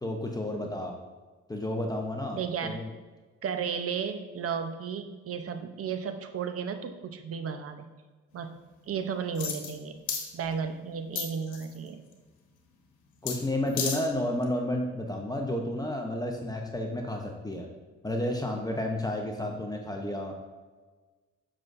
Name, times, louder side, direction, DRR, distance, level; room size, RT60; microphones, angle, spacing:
voice 1, 0.0-0.9 1.5-2.9 13.2-17.7 18.0-20.3, left 1 dB, 10° left, 1 dB, 0.8 m, -31 dB
voice 2, 2.3-2.8 3.4-7.9 8.3-8.6 8.9-10.0 10.3-12.0, right 6 dB, 50° right, 7 dB, 0.7 m, -34 dB
sound 1, 9.3-9.8 10.1-10.3 11.2-11.8 13.3-13.4 13.7-14.0 14.4-14.5, left 6 dB, 75° left, 1.2 m, -32 dB
7.4 x 6.2 x 2.6 m, 1.3 s
cardioid pair, 90°, 30 cm